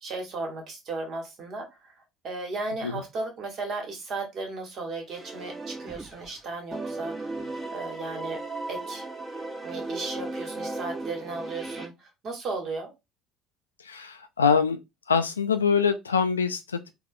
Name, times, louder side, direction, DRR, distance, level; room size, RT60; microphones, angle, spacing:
voice 1, 0.0-1.9 2.2-8.4 8.7-9.0 9.6-12.9, right 3 dB, 50° right, 1.5 m, -35 dB
sound 1, 5.1-6.4 6.7-11.9, right 2 dB, 25° right, 1.2 m, -36 dB
voice 2, 13.8-14.8 15.1-16.9, left 6 dB, 85° left, 0.3 m, -24 dB
3.7 x 2.3 x 3.7 m
figure-of-eight pair, 60°, 0 cm